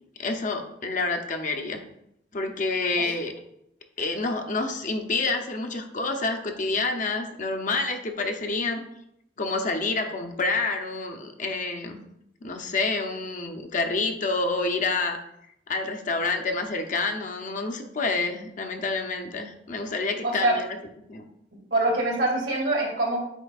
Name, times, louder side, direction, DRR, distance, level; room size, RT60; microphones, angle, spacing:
voice 1, 0.2-1.8 2.3-3.3 4.0-8.8 9.4-12.0 12.4-15.2 15.7-20.7 21.1-21.2, left 3 dB, 45° left, 4 dB, 0.7 m, -28 dB
voice 2, 20.2-20.5 21.7-23.2, right 2 dB, 85° right, -2 dB, 2.2 m, -24 dB
8.1 x 5.0 x 2.4 m, 0.79 s
head